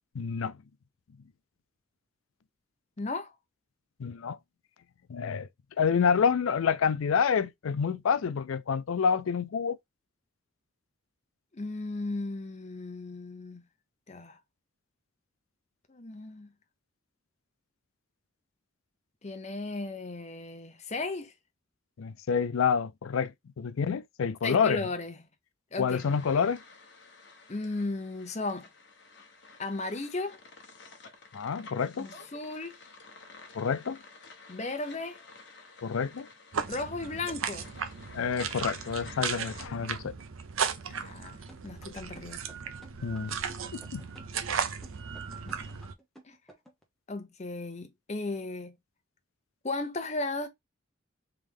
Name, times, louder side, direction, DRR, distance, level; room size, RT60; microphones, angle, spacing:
voice 1, 0.1-0.6 4.0-4.4 5.1-5.5 5.8-9.8 22.0-24.8 25.8-26.6 31.3-32.1 33.5-34.0 35.8-36.3 38.1-40.1 43.0-43.4 43.7-44.0, left 6 dB, 80° left, 0.4 m, -28 dB
voice 2, 3.0-3.3 11.5-13.6 14.1-14.4 15.9-16.5 19.2-21.3 24.4-25.2 25.7-26.0 27.5-28.7 29.6-30.4 32.0-32.8 34.5-35.2 36.7-37.7 40.9-42.5 45.5-45.6 46.2-46.4 47.1-48.7 49.6-50.5, left 2 dB, 35° left, 0.7 m, -35 dB
sound 1, 25.9-39.7, left 3 dB, 55° left, 1.0 m, -52 dB
sound 2, 36.5-45.9, right 6 dB, 80° right, 0.6 m, -36 dB
sound 3, 41.5-46.8, right 1 dB, ahead, 0.9 m, -54 dB
3.5 x 3.1 x 3.4 m
head